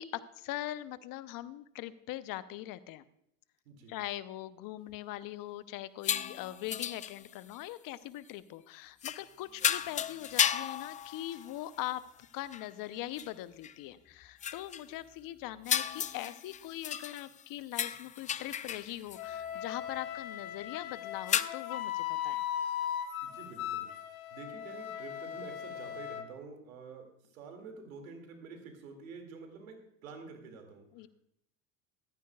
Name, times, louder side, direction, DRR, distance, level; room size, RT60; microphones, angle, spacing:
voice 1, 0.0-3.0 3.9-12.0 12.3-22.4 30.9-31.1, left 14 dB, 55° left, 14 dB, 0.8 m, -41 dB
sound 1, 6.0-7.6 9.0-9.3 9.6-11.8 12.2-12.3 12.5-12.7 13.2-13.3 13.6-13.7 14.4-14.8 15.6-17.4 17.7-19.2 21.3-21.4, left 9 dB, 20° left, 0.3 m, -34 dB
Wind instrument woodwind instrument, 19.2-26.3, left 10 dB, 85° left, 1.0 m, -38 dB
voice 2, 23.2-23.9 24.3-27.1 27.3-30.9, right 4 dB, 85° right, 4 dB, 2.5 m, -48 dB
14.5 x 14.0 x 2.4 m, 0.75 s
hypercardioid pair, 75°, 40 cm